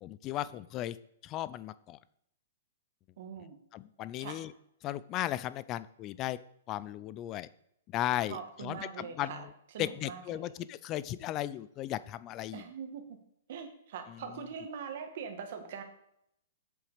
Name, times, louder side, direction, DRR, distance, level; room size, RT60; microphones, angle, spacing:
voice 1, 0.0-1.0 1.2-2.0 3.7-4.5 4.8-6.4 6.7-7.5 7.9-9.5 9.8-12.6 14.1-14.4, left 13 dB, 25° left, 17 dB, 0.4 m, -36 dB
voice 2, 3.2-3.6 4.2-4.4 8.3-9.5 9.7-10.5 12.5-13.2 13.5-15.8, right 6 dB, 50° right, 5 dB, 1.7 m, -42 dB
7.7 x 7.1 x 5.0 m, 0.76 s
hypercardioid pair, 165°, 0 cm